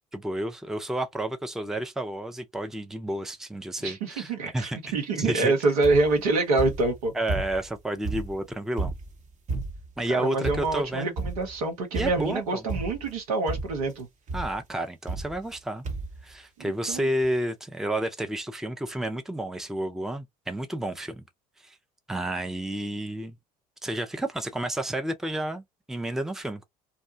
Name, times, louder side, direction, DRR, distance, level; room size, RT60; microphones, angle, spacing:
voice 1, 0.1-5.5 7.1-8.9 10.0-11.1 11.9-12.6 14.3-15.8 16.2-21.2 21.6-21.8 22.1-23.4 23.8-26.6, right 1 dB, ahead, 0.5 m, -31 dB
voice 2, 3.8-7.1 10.1-14.1 16.6-17.1, right 3 dB, 75° right, 1.0 m, -26 dB
sound 1, 5.8-6.2 6.6-7.7 8.0-10.0 10.4-10.9 11.2-11.6 11.9-12.4 12.7-13.2 13.5-13.9 14.3-14.6 15.1-15.6 15.8-16.2 16.9-17.0 17.2-17.3, right 3 dB, 40° right, 0.9 m, -33 dB
2.6 x 2.2 x 2.7 m
hypercardioid pair, 65°, 19 cm